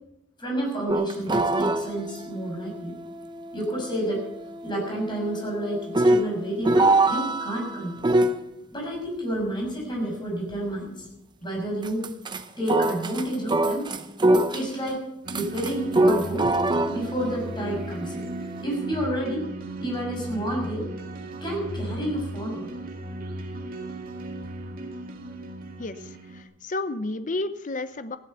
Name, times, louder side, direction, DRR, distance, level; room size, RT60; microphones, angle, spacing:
voice 1, 0.4-2.9 3.5-4.2 4.6-8.1 8.7-11.1 11.4-12.1 12.6-13.9 14.5-15.0 15.3-16.5 16.9-18.3 18.6-19.5 19.8-20.9 21.4-22.7, right 1 dB, 25° left, -1 dB, 6.5 m, -30 dB
sound 1, 0.9-8.4 11.8-12.4 12.7-14.9 15.3-18.6, right 1 dB, 25° right, 0.7 m, -25 dB
sound 2, 15.2-26.4, right 1 dB, 50° right, 2.0 m, -36 dB
voice 2, 25.8-28.2, left 2 dB, 40° left, 12 dB, 0.7 m, -32 dB
15.5 x 11.0 x 6.8 m, 0.86 s
head